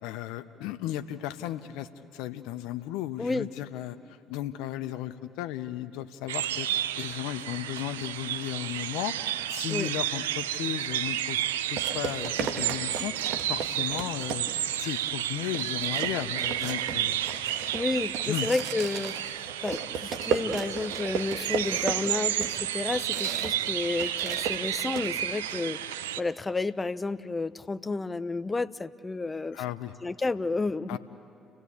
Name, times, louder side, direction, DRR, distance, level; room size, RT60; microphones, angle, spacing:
voice 1, 0.0-9.2 9.5-11.4 11.7-13.1 13.5-14.5 14.8-17.2 18.3-18.5 29.5-29.9 30.9-31.0, left 13 dB, 75° left, 11 dB, 0.7 m, -35 dB
sound 1, 6.3-26.2, right 11 dB, 90° right, 0.5 m, -31 dB
sound 2, 10.8-10.9 11.8-14.8 15.2-15.3 15.5-23.7 23.9-25.1, right 6 dB, 70° right, 1.6 m, -35 dB
voice 2, 17.7-29.6 30.0-31.0, left 3 dB, 25° left, 15 dB, 0.8 m, -31 dB
30.0 x 16.5 x 8.5 m, 2.6 s
hypercardioid pair, 55°, 0 cm